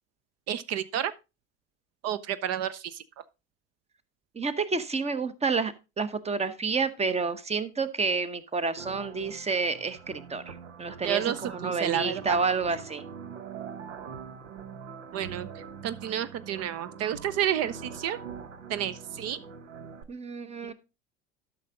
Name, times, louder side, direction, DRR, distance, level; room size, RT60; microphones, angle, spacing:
voice 1, 0.5-1.1 2.0-3.0 11.0-12.4 15.1-18.2 18.7-19.4, right 10 dB, 40° right, 0.6 m, -30 dB
voice 2, 4.3-13.0 20.1-20.7, right 4 dB, 15° right, 0.9 m, -29 dB
sound 1, 8.8-20.0, right 6 dB, 80° right, 0.9 m, -43 dB
12.0 x 5.9 x 3.7 m
figure-of-eight pair, 70°, 38 cm